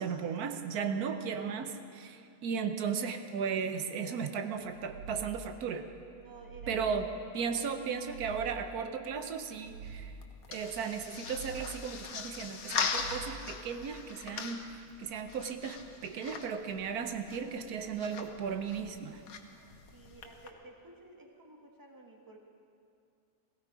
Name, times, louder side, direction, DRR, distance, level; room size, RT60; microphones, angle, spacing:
voice 1, 0.0-5.9 6.7-7.1 7.3-10.1 10.5-19.2, right 6 dB, 85° right, 7 dB, 1.4 m, -36 dB
sound 1, 4.5-5.6 6.1-7.2 7.7-8.8 9.3-10.4 10.9-12.0 12.5-13.6, right 4 dB, 70° right, 2.5 m, -47 dB
voice 2, 6.2-7.1 7.6-8.0 8.2-8.4 19.9-22.4, right 2 dB, 15° right, 1 dB, 1.5 m, -52 dB
sound 2, 9.6-20.5, left 5 dB, 70° left, 1.4 m, -41 dB
17.0 x 15.5 x 4.9 m, 2.4 s
omnidirectional pair, 1.6 m